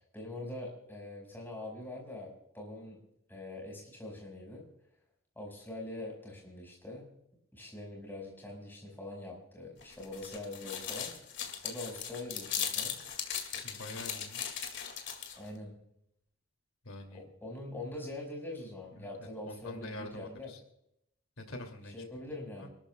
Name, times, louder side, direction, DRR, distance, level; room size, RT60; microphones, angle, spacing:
voice 1, 0.1-3.0 3.3-4.6 5.4-7.1 7.5-11.1 11.6-13.0 15.4-15.8 17.1-20.5 21.9-22.7, left 2 dB, 10° left, -1 dB, 5.2 m, -43 dB
sound 1, 9.8-15.5, left 8 dB, 60° left, 2.3 m, -38 dB
voice 2, 13.6-14.6 16.8-17.3 18.9-20.6 21.4-22.0 22.6-22.7, left 1 dB, 90° left, 5 dB, 2.6 m, -46 dB
28.0 x 13.5 x 2.3 m, 0.77 s
head